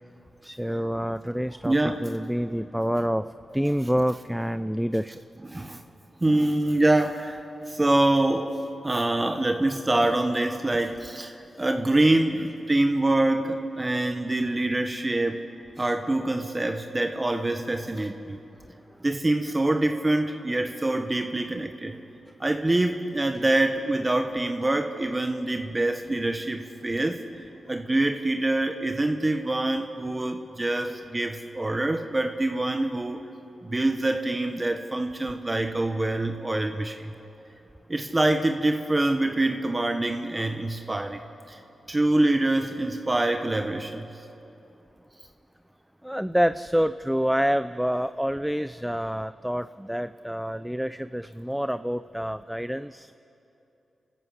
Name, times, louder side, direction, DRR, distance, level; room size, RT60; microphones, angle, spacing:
voice 1, 0.4-3.3 3.5-5.1 46.0-53.1, equal, 5° right, 12 dB, 0.5 m, -27 dB
voice 2, 1.6-2.0 5.5-5.8 6.2-8.5 8.8-15.4 15.8-18.4 19.0-22.0 22.4-27.2 27.7-33.2 33.6-37.1 37.9-41.2 41.5-41.6 41.9-44.0, right 2 dB, 25° right, 5 dB, 1.3 m, -25 dB
30.0 x 13.5 x 8.1 m, 2.9 s
cardioid pair, 55°, 0 cm